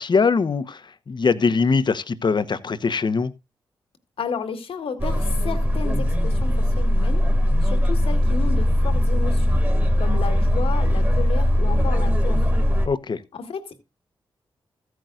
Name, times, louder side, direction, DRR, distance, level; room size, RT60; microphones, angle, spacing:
voice 1, 0.0-3.3 12.8-13.2, left 4 dB, 50° left, 1.0 m, -22 dB
voice 2, 4.2-7.2 7.6-9.6 10.0-12.4 13.3-13.8, left 5 dB, 75° left, 1.7 m, -32 dB
sound 1, 5.0-12.9, equal, 20° right, 2.3 m, -20 dB
14.0 x 9.2 x 2.5 m
supercardioid pair, 45°, 10 cm